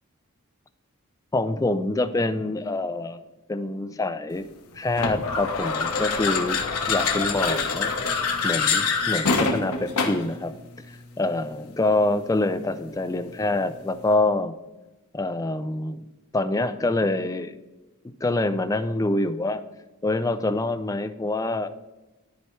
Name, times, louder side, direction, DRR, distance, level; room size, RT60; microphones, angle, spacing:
voice 1, 1.3-3.2 3.5-4.5 4.8-7.9 8.4-14.6 15.1-16.0 16.3-17.5 18.2-19.6 20.0-21.7, left 2 dB, 15° left, 11 dB, 0.3 m, -26 dB
sound 1, 4.9-10.3, left 4 dB, 80° left, 1.0 m, -25 dB
13.0 x 4.6 x 3.2 m, 1.1 s
head